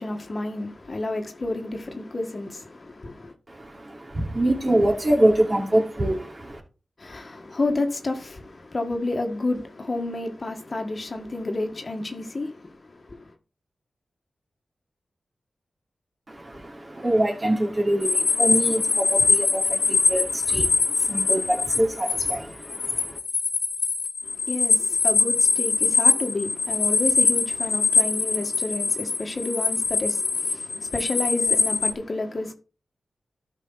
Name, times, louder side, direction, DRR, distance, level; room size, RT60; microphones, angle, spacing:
voice 1, 0.0-3.3 7.0-13.3 24.2-32.5, left 2 dB, 45° left, 1.7 m, -30 dB
voice 2, 3.5-6.6 16.3-23.2, right 1 dB, 30° right, 2.9 m, -25 dB
sound 1, 18.0-22.4 22.6-31.9, left 4 dB, 70° left, 1.7 m, -23 dB
12.0 x 5.4 x 4.1 m
cardioid pair, 55°, 0 cm